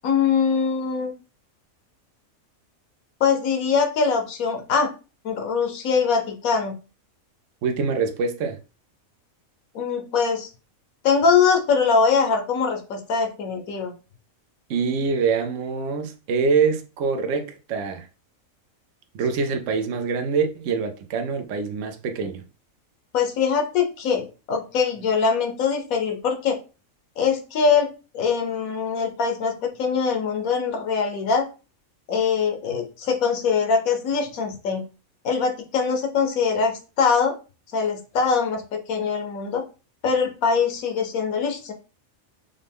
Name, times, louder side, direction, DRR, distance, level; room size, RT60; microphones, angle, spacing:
voice 1, 0.0-1.1 3.2-4.9 5.2-6.8 9.7-10.5 11.0-13.9 23.1-26.6 27.2-31.5 32.1-34.8 35.2-37.3 37.7-39.6 40.0-41.7, left 5 dB, 85° left, 1.3 m, -22 dB
voice 2, 7.6-8.6 14.7-18.1 19.1-22.4, right 5 dB, 70° right, 0.9 m, -25 dB
5.1 x 2.2 x 3.5 m
omnidirectional pair, 1.4 m